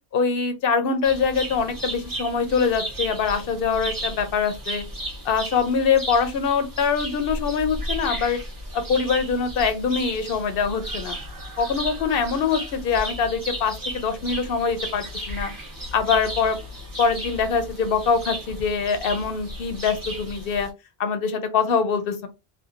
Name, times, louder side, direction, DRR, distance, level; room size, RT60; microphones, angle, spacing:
voice 1, 0.1-4.8 5.2-8.4 8.7-11.2 11.6-15.5 15.9-16.6 17.0-20.7 21.0-22.3, left 5 dB, 65° left, 0.8 m, -23 dB
sound 1, 1.0-20.7, right 1 dB, 25° right, 0.7 m, -34 dB
2.7 x 2.2 x 2.5 m
omnidirectional pair, 1.1 m